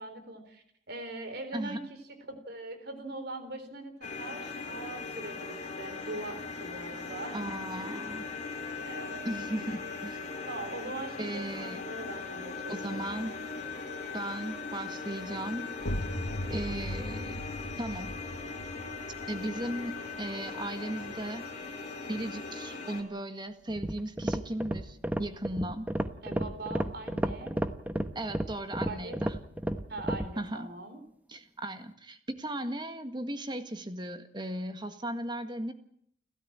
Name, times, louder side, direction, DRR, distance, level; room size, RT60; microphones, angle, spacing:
voice 1, 0.0-2.0 2.5-7.4 7.8-8.0 8.8-9.2 10.5-13.2 26.2-27.5 28.9-29.2 29.9-31.0, right 2 dB, 55° right, 9 dB, 4.1 m, -41 dB
sound 1, 4.0-23.0, left 4 dB, 40° left, 4.4 m, -39 dB
voice 2, 7.3-8.2 9.3-10.2 11.2-11.8 12.7-13.3 14.1-15.7 16.5-17.4 17.8-18.1 19.3-21.5 22.1-25.9 28.2-29.4 30.4-30.7 31.3-35.7, right 1 dB, 25° right, 8 dB, 1.8 m, -36 dB
sound 2, 15.8-21.3, left 1 dB, 85° left, 2.5 m, -39 dB
sound 3, 23.7-30.3, right 1 dB, 10° right, 1.1 m, -32 dB
30.0 x 13.0 x 8.8 m, 0.69 s
head